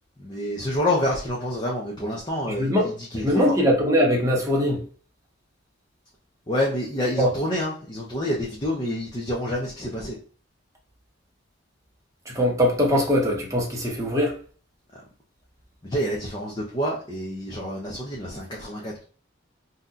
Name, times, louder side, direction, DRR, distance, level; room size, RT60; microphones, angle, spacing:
voice 1, 0.2-3.6 6.5-10.2 14.9-15.0 15.8-19.0, left 1 dB, 25° left, 0.6 m, -28 dB
voice 2, 2.6-2.9 3.2-4.8 7.2-7.3 12.3-14.4, equal, 15° right, 0.7 m, -21 dB
2.7 x 2.2 x 3.7 m
head